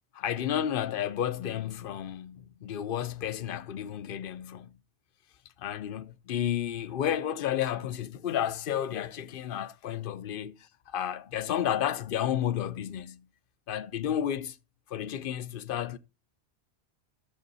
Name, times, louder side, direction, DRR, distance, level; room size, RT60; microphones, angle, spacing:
voice 1, 0.1-4.8 5.6-10.5 10.9-13.3 13.7-14.6 14.9-16.0, left 10 dB, 55° left, 0.8 m, -32 dB
14.0 x 7.1 x 4.0 m
omnidirectional pair, 1.2 m